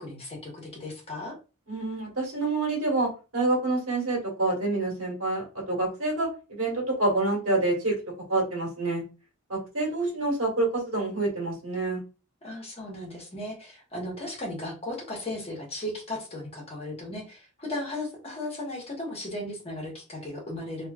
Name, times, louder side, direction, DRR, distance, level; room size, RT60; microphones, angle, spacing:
voice 1, 0.0-1.3 12.4-20.9, left 1 dB, 30° left, -1 dB, 1.1 m, -36 dB
voice 2, 1.7-8.0 8.3-9.0 9.5-12.0, right 2 dB, 70° right, -2 dB, 1.6 m, -27 dB
3.0 x 2.8 x 2.3 m, 0.32 s
head